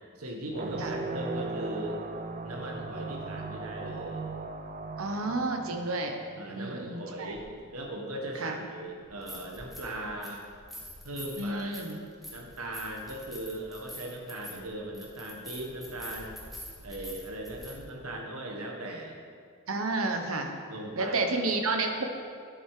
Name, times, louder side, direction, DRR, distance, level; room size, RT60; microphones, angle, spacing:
voice 1, 0.2-2.0 2.4-4.2 6.4-10.4 11.0-11.7 12.3-16.4 16.8-19.2 20.7-21.3, right 1 dB, 85° right, 0 dB, 1.6 m, -38 dB
sound 1, 0.5-6.7, right 3 dB, 35° right, 0.5 m, -38 dB
voice 2, 5.0-6.1 6.6-7.4 8.3-8.6 11.4-12.0 19.7-20.5 21.0-22.0, right 2 dB, 70° right, 4 dB, 1.1 m, -30 dB
sound 2, 7.3-7.4 9.0-9.9 10.2-17.7, left 1 dB, ahead, 1.6 m, -46 dB
10.0 x 8.0 x 5.0 m, 2.2 s
head